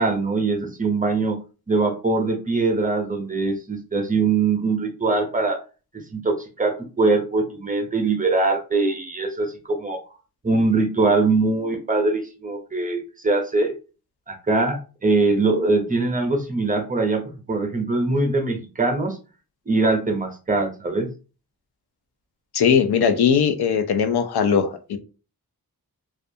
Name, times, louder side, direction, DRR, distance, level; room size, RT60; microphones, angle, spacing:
voice 1, 0.0-1.4 1.7-5.6 6.1-10.0 10.4-13.7 14.3-19.2 19.7-21.1, right 3 dB, 20° right, 5 dB, 0.6 m, -22 dB
voice 2, 22.5-25.0, left 7 dB, 90° left, 9 dB, 0.5 m, -19 dB
2.3 x 2.3 x 2.6 m, 0.34 s
wide cardioid pair, 75°, 38 cm